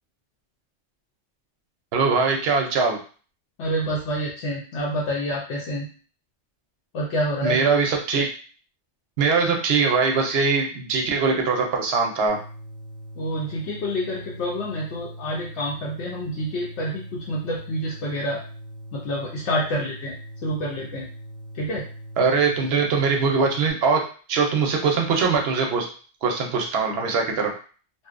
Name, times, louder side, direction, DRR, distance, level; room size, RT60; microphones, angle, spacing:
voice 1, 1.9-3.0 7.4-8.3 9.2-12.4 22.2-24.0 24.3-25.9 26.2-27.5, right 4 dB, 65° right, 2 dB, 0.7 m, -22 dB
voice 2, 3.6-5.9 6.9-7.7 13.2-18.4 18.9-20.1 20.4-21.1 21.5-21.9, equal, 75° left, -5 dB, 0.9 m, -28 dB
sound 1, 12.3-23.7, equal, ahead, 1.0 m, -41 dB
2.6 x 2.0 x 2.4 m, 0.40 s
omnidirectional pair, 1.2 m